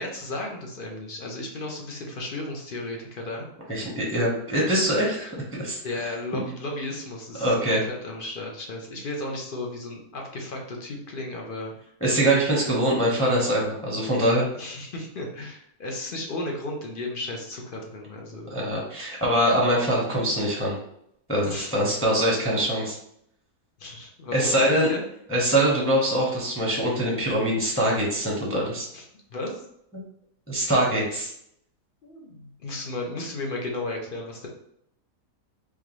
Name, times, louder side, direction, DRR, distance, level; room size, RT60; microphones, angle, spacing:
voice 1, 0.0-3.5 5.8-11.7 14.6-18.5 21.5-21.7 23.8-25.0 28.9-29.7 32.0-34.5, left 2 dB, 50° left, 0 dB, 0.6 m, -34 dB
voice 2, 3.7-5.8 7.4-7.8 12.0-14.5 18.5-20.8 21.3-23.0 24.3-24.9 25.3-28.9 30.5-31.3, right 1 dB, 5° left, -4 dB, 0.9 m, -23 dB
3.7 x 3.0 x 3.1 m, 0.74 s
omnidirectional pair, 1.7 m